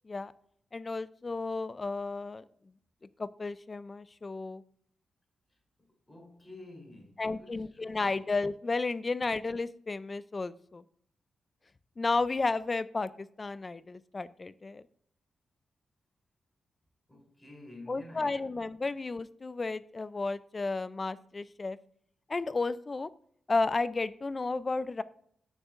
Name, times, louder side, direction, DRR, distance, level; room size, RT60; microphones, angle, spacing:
voice 1, 0.7-2.4 3.2-4.6 7.2-10.8 12.0-14.8 17.9-21.8 22.3-23.1 23.5-25.0, left 3 dB, 30° left, 0.3 m, -33 dB
voice 2, 5.5-8.2 17.1-18.7, left 1 dB, 15° left, 3.4 m, -51 dB
14.0 x 6.3 x 2.5 m
cardioid pair, 100°, 0 cm